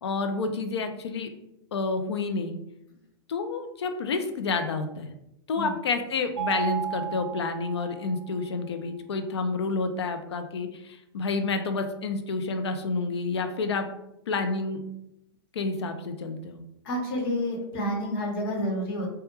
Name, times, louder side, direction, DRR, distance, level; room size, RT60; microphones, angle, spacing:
voice 1, 0.0-1.3 1.7-2.6 3.3-5.1 5.5-13.9 14.3-14.8 15.5-16.6, left 3 dB, 90° left, 7 dB, 0.4 m, -29 dB
Mallet percussion, 6.4-8.3, right 8 dB, 85° right, 0.4 m, -33 dB
voice 2, 16.8-19.1, equal, 65° left, 0 dB, 0.9 m, -29 dB
2.2 x 2.1 x 2.9 m, 0.84 s
hypercardioid pair, 120°, 14 cm